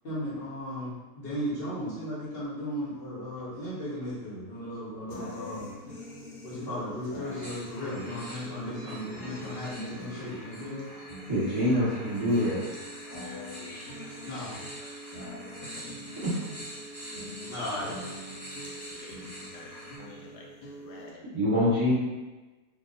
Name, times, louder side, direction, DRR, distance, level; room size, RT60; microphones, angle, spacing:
voice 1, 0.0-5.7 6.4-10.8 11.7-11.8 14.2-14.6 17.4-17.9, equal, 40° left, -9 dB, 1.1 m, -36 dB
sound 1, 5.1-21.1, equal, 70° left, 1.1 m, -44 dB
sound 2, 7.2-20.0, equal, 15° left, 1.0 m, -45 dB
voice 2, 11.3-12.6 16.2-16.3 21.3-21.9, left 1 dB, 20° right, -12 dB, 1.2 m, -25 dB
voice 3, 15.6-15.9 17.5-18.1 18.6-21.3, left 3 dB, 85° left, -1 dB, 1.2 m, -50 dB
2.7 x 2.3 x 3.9 m, 1.2 s
omnidirectional pair, 1.8 m